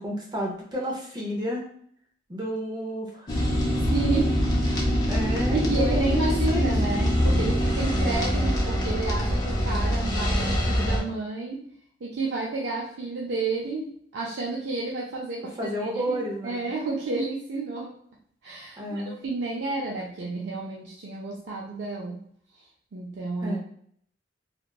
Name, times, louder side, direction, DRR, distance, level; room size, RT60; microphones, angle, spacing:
voice 1, 0.0-1.6 2.3-3.4 5.1-6.7 15.6-16.6 18.8-19.1 23.4-23.6, equal, 25° right, -1 dB, 0.5 m, -31 dB
sound 1, 3.3-11.0, equal, 25° left, 0.5 m, -24 dB
voice 2, 3.7-4.5 5.5-11.6 12.0-16.2 16.4-17.9 18.4-22.2 22.5-23.6, right 3 dB, 75° right, -3 dB, 0.4 m, -31 dB
2.8 x 2.2 x 2.3 m, 0.63 s
head